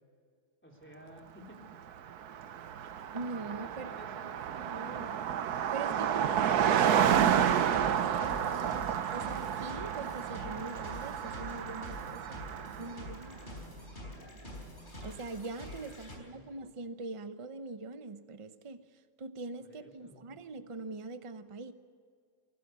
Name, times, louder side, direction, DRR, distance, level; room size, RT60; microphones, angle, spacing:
voice 1, 0.6-1.7 3.5-4.3 15.7-16.4 19.6-20.3, equal, 5° left, 0 dB, 3.6 m, -53 dB
Car passing by, 1.8-1.9 2.1-13.1, right 9 dB, 60° right, 1.3 m, -30 dB
voice 2, 3.1-3.9 4.5-5.2 5.7-6.1 7.0-8.8 9.1-12.4 12.8-13.4 15.0-18.8 19.2-21.7, right 3 dB, 35° right, 10 dB, 0.4 m, -43 dB
sound 1, 6.9-16.2, left 1 dB, 25° left, 4.9 m, -46 dB
26.0 x 12.5 x 8.1 m, 2.2 s
omnidirectional pair, 2.0 m